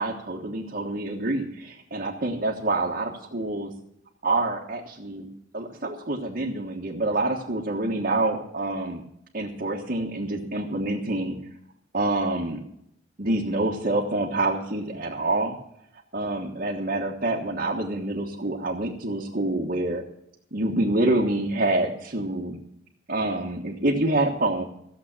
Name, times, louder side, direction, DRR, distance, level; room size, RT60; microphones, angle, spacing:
voice 1, 0.0-3.7 4.2-5.3 5.5-9.0 9.3-11.4 11.9-12.6 13.2-15.6 16.1-20.0 20.5-22.6 23.1-24.6, right 2 dB, 55° right, -3 dB, 1.5 m, -27 dB
15.0 x 7.6 x 7.3 m, 0.75 s
head